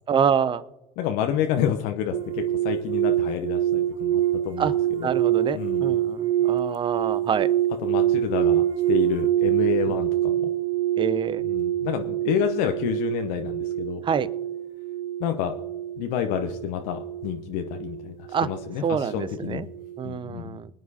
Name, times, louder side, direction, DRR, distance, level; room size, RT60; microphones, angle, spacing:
voice 1, 0.1-0.6 4.6-4.7 5.0-7.5 9.9-10.0 11.0-11.4 14.0-14.3 18.3-18.5 18.8-19.7 20.0-20.7, right 7 dB, 30° right, 16 dB, 0.7 m, -26 dB
voice 2, 1.0-5.1 5.5-5.9 7.8-10.5 11.4-14.1 15.2-15.6 16.0-19.7 20.0-20.6, left 10 dB, 60° left, 5 dB, 0.9 m, -29 dB
sound 1, 2.1-19.4 19.7-20.1, right 12 dB, 80° right, 0.8 m, -26 dB
24.5 x 9.5 x 2.8 m, 1.0 s
hypercardioid pair, 70°, 16 cm